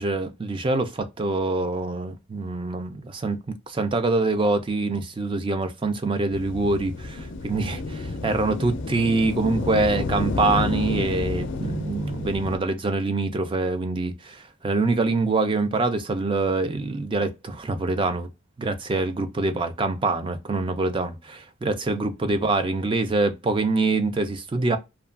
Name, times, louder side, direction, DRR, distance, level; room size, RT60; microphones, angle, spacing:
voice 1, 0.0-3.4 3.7-18.3 18.6-24.8, right 3 dB, 25° right, 0.4 m, -25 dB
sound 1, 6.3-12.6, left 3 dB, 60° left, 0.4 m, -30 dB
2.8 x 2.3 x 2.3 m
head